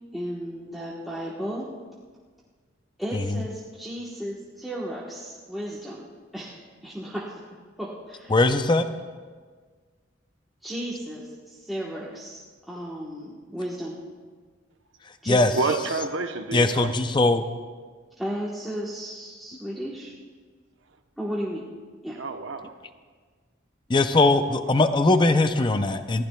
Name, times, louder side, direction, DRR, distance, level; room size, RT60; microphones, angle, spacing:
voice 1, 0.1-1.7 3.0-6.0 6.3-6.6 6.8-7.4 7.8-8.4 10.6-12.4 12.7-14.0 15.2-15.6 18.2-20.1 21.2-21.7 22.0-22.2, equal, ahead, -7 dB, 1.1 m, -34 dB
voice 2, 8.3-8.9 15.3-15.5 16.5-17.4 23.9-26.3, left 2 dB, 25° left, 9 dB, 0.5 m, -20 dB
voice 3, 15.5-16.9 22.2-22.7 24.5-24.9, right 3 dB, 85° right, 6 dB, 0.9 m, -29 dB
21.0 x 15.0 x 2.3 m, 1.5 s
head